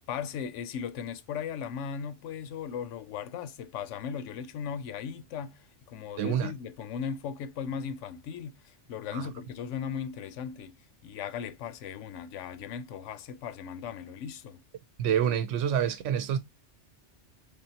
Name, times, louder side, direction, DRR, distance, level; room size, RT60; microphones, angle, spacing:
voice 1, 0.1-14.6, left 7 dB, 85° left, 0.9 m, -37 dB
voice 2, 6.2-6.5 9.1-9.2 15.0-16.4, right 9 dB, 90° right, 1.0 m, -27 dB
3.5 x 3.5 x 2.8 m
omnidirectional pair, 1.2 m